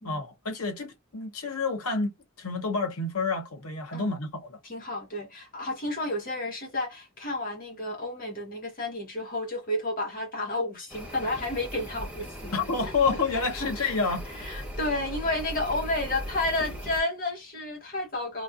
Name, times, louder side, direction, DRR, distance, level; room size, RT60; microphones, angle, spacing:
voice 1, 0.0-4.6 12.5-14.3, left 4 dB, 85° left, 1.0 m, -29 dB
voice 2, 4.6-12.6 13.3-13.9 14.3-18.4, left 2 dB, 40° left, 1.2 m, -31 dB
sound 1, 10.9-17.0, equal, 5° right, 0.7 m, -39 dB
3.1 x 2.5 x 2.5 m
head